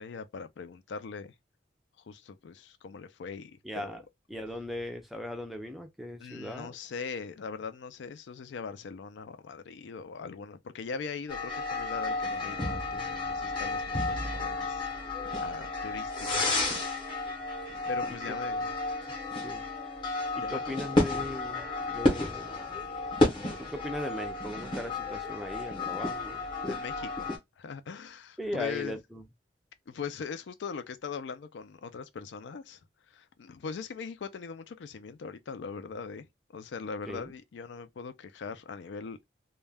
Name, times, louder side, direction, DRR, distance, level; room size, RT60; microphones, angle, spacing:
voice 1, 0.0-1.3 2.0-4.0 6.2-16.5 17.9-18.7 20.4-20.8 26.6-29.0 29.9-32.8 33.1-39.2, left 5 dB, 70° left, 0.4 m, -41 dB
voice 2, 3.6-4.0 4.3-6.7 18.1-18.4 19.4-19.6 20.3-22.7 23.6-26.5 28.4-29.2 37.1-37.3, left 1 dB, ahead, 0.4 m, -38 dB
sound 1, 11.3-27.4, left 2 dB, 25° left, 0.7 m, -32 dB
2.2 x 2.1 x 3.3 m
head